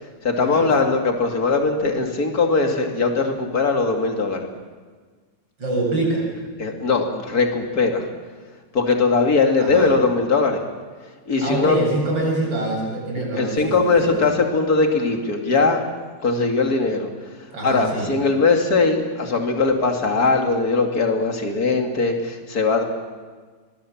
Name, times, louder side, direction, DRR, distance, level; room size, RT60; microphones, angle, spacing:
voice 1, 0.2-4.5 6.6-8.0 8.7-10.6 11.3-11.8 13.4-15.8 16.2-17.1 17.6-22.8, left 4 dB, 50° left, 3 dB, 2.9 m, -20 dB
voice 2, 5.6-6.3 9.6-9.9 11.4-14.1 17.5-18.1, right 2 dB, 75° right, -2 dB, 8.2 m, -25 dB
24.5 x 20.5 x 7.3 m, 1.5 s
omnidirectional pair, 2.1 m